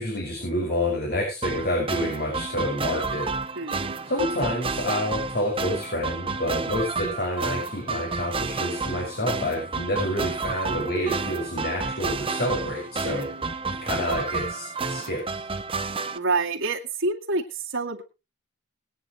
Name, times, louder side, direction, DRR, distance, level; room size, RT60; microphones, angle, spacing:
voice 1, 0.0-3.3 4.1-13.3 13.8-15.2, left 1 dB, 50° left, 1 dB, 6.2 m, -28 dB
sound 1, 1.4-16.2, right 4 dB, 25° right, 0.9 m, -31 dB
voice 2, 3.6-4.0 13.0-13.4 16.1-18.0, right 3 dB, 65° right, 0 dB, 2.2 m, -28 dB
21.5 x 9.6 x 3.1 m, 0.29 s
head